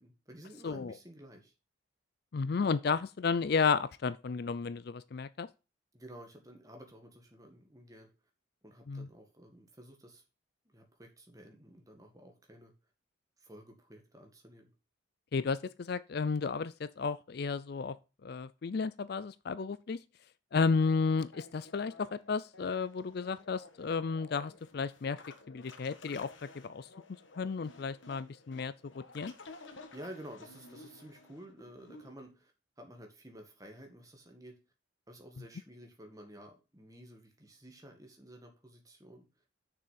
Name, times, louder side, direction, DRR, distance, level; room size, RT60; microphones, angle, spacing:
voice 1, 0.0-1.5 5.9-8.1 8.6-10.2 10.7-12.7 13.4-14.7 29.9-32.5 32.8-34.6 35.1-39.3, right 1 dB, 15° right, 1.9 m, -52 dB
voice 2, 0.6-0.9 2.3-5.5 8.9-9.1 15.3-17.9 18.2-20.0 20.5-25.2 25.5-26.3 26.6-26.9 27.4-28.7 29.1-29.3, left 5 dB, 50° left, 0.4 m, -32 dB
sound 1, 21.3-32.1, left 3 dB, 75° left, 1.4 m, -54 dB
6.9 x 6.2 x 5.7 m
head